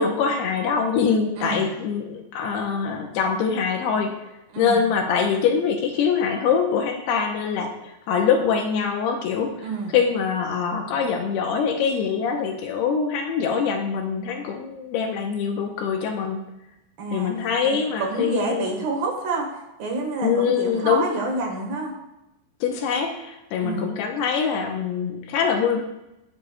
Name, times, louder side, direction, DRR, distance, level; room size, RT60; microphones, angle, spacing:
voice 1, 0.0-4.1 4.6-9.5 9.9-16.4 17.1-18.7 20.2-21.1 22.6-25.8, left 6 dB, 80° left, 3 dB, 2.7 m, -24 dB
voice 2, 1.4-1.7 4.5-4.8 9.6-9.9 17.0-17.3 17.6-21.9 23.6-23.9, right 3 dB, 60° right, 0 dB, 2.9 m, -28 dB
19.5 x 6.8 x 2.3 m, 0.90 s
omnidirectional pair, 4.9 m